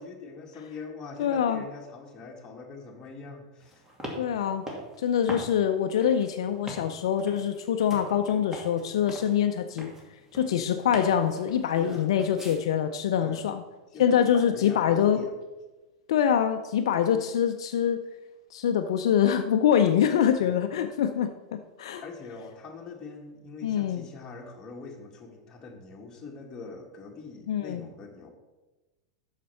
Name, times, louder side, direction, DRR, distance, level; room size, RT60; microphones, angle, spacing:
voice 1, 0.0-3.8 11.8-12.1 13.2-13.5 13.9-15.3 20.4-20.6 22.0-28.3, left 4 dB, 25° left, 0 dB, 1.9 m, -43 dB
voice 2, 1.2-1.6 4.2-4.6 5.0-9.9 10.3-13.6 14.0-15.2 16.1-18.0 18.5-22.0 23.6-24.1 27.5-27.9, left 9 dB, 75° left, 7 dB, 0.5 m, -25 dB
sound 1, 3.6-12.6, equal, 15° right, 2.4 m, -43 dB
7.4 x 6.6 x 5.6 m, 1.1 s
hypercardioid pair, 110°, 3 cm